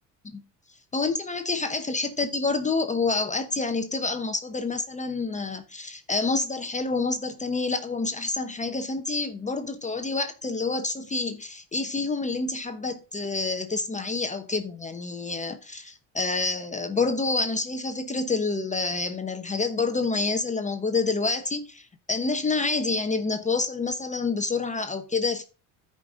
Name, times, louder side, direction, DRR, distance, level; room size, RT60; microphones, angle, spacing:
voice 1, 0.9-25.4, left 3 dB, 20° left, 1.0 m, -28 dB
12.5 x 5.4 x 3.7 m
supercardioid pair, 95°, 38 cm